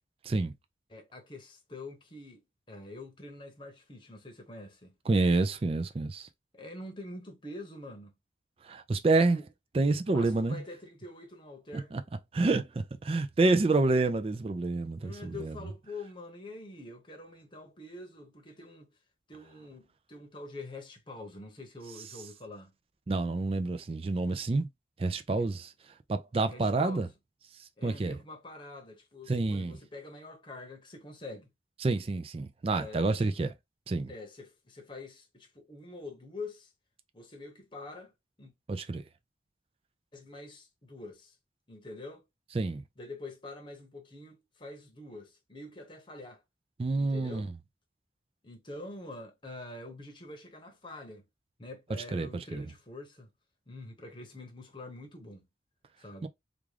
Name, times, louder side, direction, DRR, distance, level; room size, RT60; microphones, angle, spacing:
voice 1, 0.9-2.4 2.7-4.9 6.5-8.1 9.3-9.5 10.1-11.9 15.0-18.9 19.3-22.7 25.4-25.5 26.3-27.1 27.8-31.5 32.6-33.1 34.1-36.7 37.1-38.1 38.4-38.5 40.1-41.3 41.7-42.2 43.0-46.4 47.0-47.5 48.4-51.2 51.6-53.3 53.7-55.5 56.0-56.3, left 2 dB, 25° left, 0.9 m, -45 dB
voice 2, 5.1-6.3 8.6-9.4 9.7-10.6 11.7-12.0 12.3-15.6 23.1-24.7 25.0-25.7 26.1-27.1 27.8-28.1 29.3-29.8 31.8-33.5 33.9-34.1 38.7-39.0 42.5-42.8 46.8-47.5 52.1-52.6 56.2-56.3, right 3 dB, 30° right, 0.3 m, -28 dB
3.6 x 2.4 x 3.2 m
head